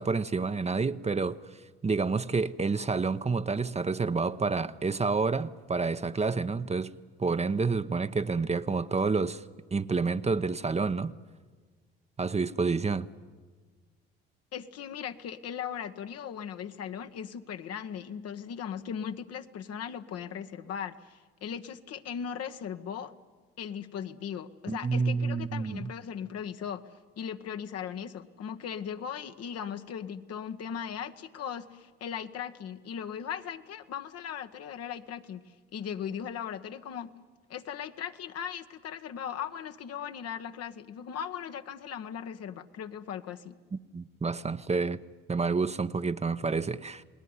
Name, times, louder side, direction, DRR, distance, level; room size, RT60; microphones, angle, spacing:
voice 1, 0.0-1.4 1.8-6.9 7.2-9.4 9.7-11.1 12.2-13.1 24.7-25.9 43.9-45.0 45.3-47.0, right 4 dB, 20° right, 0.9 m, -29 dB
voice 2, 14.5-23.1 23.6-26.8 27.2-35.4 35.7-37.1 37.5-43.6, left 8 dB, 55° left, 1.4 m, -38 dB
29.0 x 19.5 x 9.7 m
hypercardioid pair, 60°, 29 cm